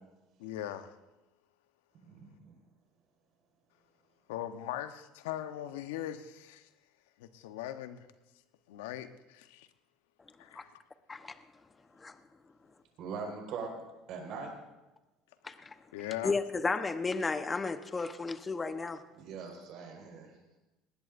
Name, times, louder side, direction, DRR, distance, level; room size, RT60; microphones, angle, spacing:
voice 1, 0.4-0.9 4.3-6.7 7.2-8.1 8.7-9.7 10.4-10.8 15.9-16.3, left 12 dB, 80° left, 10 dB, 0.9 m, -40 dB
voice 2, 2.0-2.5 13.0-14.5 19.1-20.3, right 5 dB, 60° right, 1 dB, 4.7 m, -42 dB
voice 3, 15.4-15.7 16.2-19.0, left 4 dB, 25° left, 10 dB, 1.0 m, -33 dB
19.5 x 19.0 x 2.6 m, 1.1 s
hypercardioid pair, 80°, 0 cm